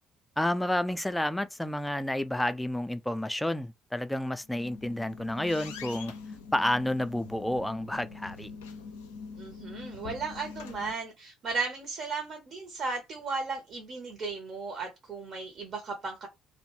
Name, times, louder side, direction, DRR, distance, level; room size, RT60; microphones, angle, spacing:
voice 1, 0.4-6.1 6.5-8.5, left 1 dB, 5° left, 0.3 m, -30 dB
sound 1, 4.4-10.9, left 5 dB, 75° left, 0.4 m, -43 dB
voice 2, 9.4-16.3, right 4 dB, 45° right, 0.8 m, -35 dB
2.2 x 2.1 x 3.0 m
figure-of-eight pair, 50°, 0 cm